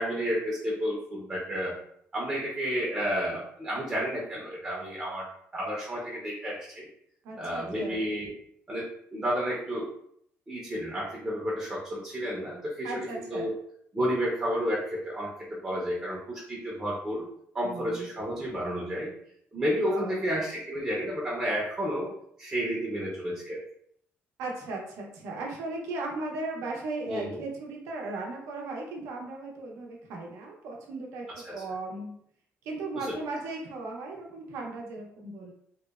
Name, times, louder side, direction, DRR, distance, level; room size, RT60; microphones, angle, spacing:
voice 1, 0.0-1.7 2.1-5.3 5.5-6.9 7.3-8.3 8.7-9.9 10.5-13.5 13.9-17.2 17.5-19.1 19.5-22.1 22.4-23.6 27.1-27.4 31.4-31.5 32.9-33.1, equal, 15° right, -4 dB, 0.5 m, -31 dB
voice 2, 7.2-8.0 12.8-13.5 17.6-18.1 19.9-20.3 24.4-32.1 32.6-35.5, right 2 dB, 85° right, 0 dB, 0.6 m, -37 dB
2.8 x 2.0 x 2.3 m, 0.69 s
cardioid pair, 155°, 5 cm